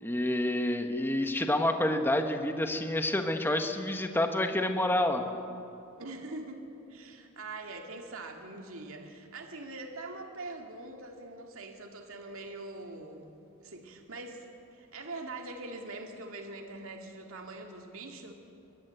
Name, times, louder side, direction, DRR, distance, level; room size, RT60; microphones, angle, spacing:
voice 1, 0.0-5.2, left 1 dB, 10° left, 6 dB, 1.3 m, -28 dB
voice 2, 6.0-6.6 6.9-13.4 13.6-18.3, right 2 dB, 70° right, 3 dB, 2.2 m, -43 dB
22.0 x 20.5 x 8.3 m, 2.7 s
head